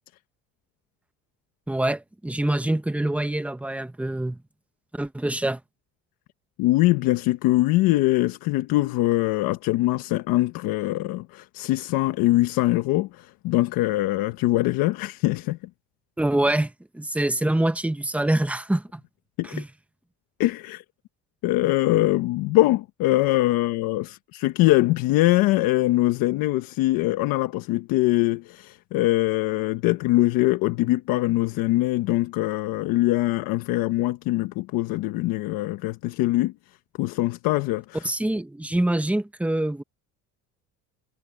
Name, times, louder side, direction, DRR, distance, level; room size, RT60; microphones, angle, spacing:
voice 1, 1.7-4.4 4.9-5.6 16.2-19.0 19.4-19.7 38.0-39.8, right 1 dB, 5° right, 1.1 m, -25 dB
voice 2, 6.6-15.6 19.4-19.6 20.4-20.8 21.4-36.5 37.0-38.1, left 18 dB, 85° left, 1.2 m, -23 dB
cardioid pair, 125°, 33 cm